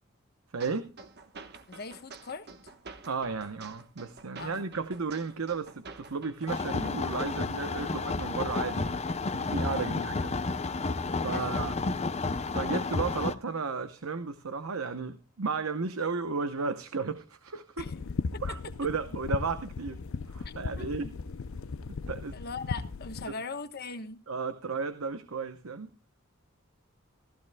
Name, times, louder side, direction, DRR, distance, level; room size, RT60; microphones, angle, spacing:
voice 1, 0.5-1.0 3.1-9.0 9.4-10.4 11.2-11.8 12.5-17.9 18.4-20.0 20.3-21.1 21.9-22.4 23.3-23.4 24.3-25.9, right 4 dB, 85° right, 0.9 m, -34 dB
sound 1, 0.6-6.6, right 4 dB, 50° right, 1.2 m, -48 dB
voice 2, 1.7-2.5 4.4-4.7 9.8-10.1 11.3-11.8 17.8-18.0 18.3-18.6 20.4-21.1 22.3-24.2, left 4 dB, 50° left, 1.1 m, -41 dB
sound 2, 6.5-13.3, left 3 dB, 30° left, 0.6 m, -31 dB
sound 3, 17.8-23.3, left 4 dB, 75° left, 0.5 m, -37 dB
15.5 x 15.0 x 2.2 m
head